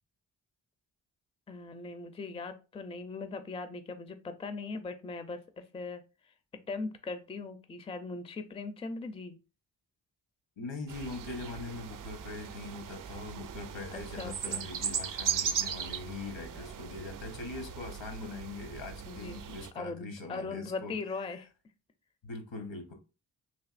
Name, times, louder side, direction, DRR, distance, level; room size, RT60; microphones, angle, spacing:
voice 1, 1.5-6.3 6.7-9.4 13.9-14.7 19.1-19.4 19.8-21.5, left 3 dB, 15° left, 0.4 m, -40 dB
voice 2, 10.6-21.0 22.2-22.9, left 3 dB, 75° left, 1.1 m, -42 dB
sound 1, 10.9-19.7, right 8 dB, 50° right, 0.4 m, -38 dB
3.4 x 2.6 x 2.5 m
supercardioid pair, 40°, 46 cm